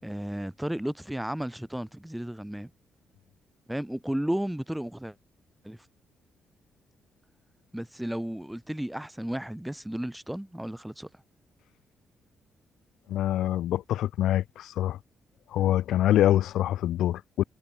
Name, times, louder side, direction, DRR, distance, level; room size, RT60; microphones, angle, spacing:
voice 1, 0.0-2.7 3.7-5.1 5.6-5.8 7.7-11.1, right 1 dB, 5° right, 5.1 m, -33 dB
voice 2, 13.1-15.0 15.5-17.4, left 12 dB, 85° left, 1.4 m, -25 dB
cardioid pair, 155°, 0 cm